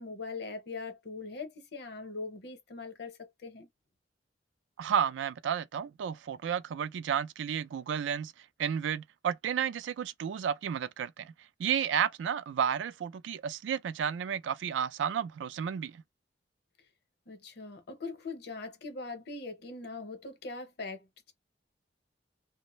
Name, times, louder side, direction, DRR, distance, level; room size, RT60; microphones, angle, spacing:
voice 1, 0.0-3.7 17.3-21.3, left 3 dB, 65° left, 0.8 m, -41 dB
voice 2, 4.8-8.3 8.6-11.3 11.6-16.0, right 8 dB, 90° right, 0.3 m, -32 dB
2.5 x 2.0 x 2.9 m
head